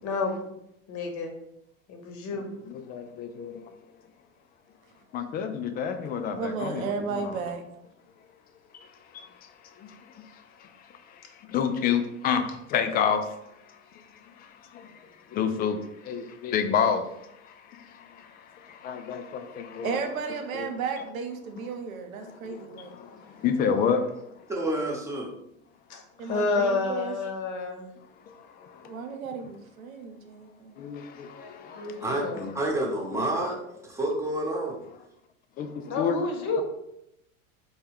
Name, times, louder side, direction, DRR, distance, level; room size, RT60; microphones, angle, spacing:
voice 1, 0.0-0.5 0.9-1.3 1.9-2.5 25.9-27.9 31.8-32.5 35.8-36.6, left 3 dB, 45° left, 3 dB, 1.0 m, -29 dB
voice 2, 2.7-3.6 5.1-7.4 8.7-8.9 9.1-9.3 9.8-10.0 10.6-10.7 11.4-13.3 14.4-17.0 17.4-20.0 20.5-20.7 22.2-24.0 28.3-29.0 30.8-32.0 35.6-36.2, left 7 dB, 25° left, 8 dB, 0.3 m, -30 dB
voice 3, 6.3-7.6 19.8-22.9 26.2-27.1 28.8-30.8 33.1-33.6, right 5 dB, 75° right, 5 dB, 0.8 m, -34 dB
voice 4, 24.5-25.3 31.4-33.6 33.8-34.8, right 1 dB, 5° right, -2 dB, 1.0 m, -29 dB
4.4 x 2.3 x 3.5 m, 0.79 s
hypercardioid pair, 90°, 41 cm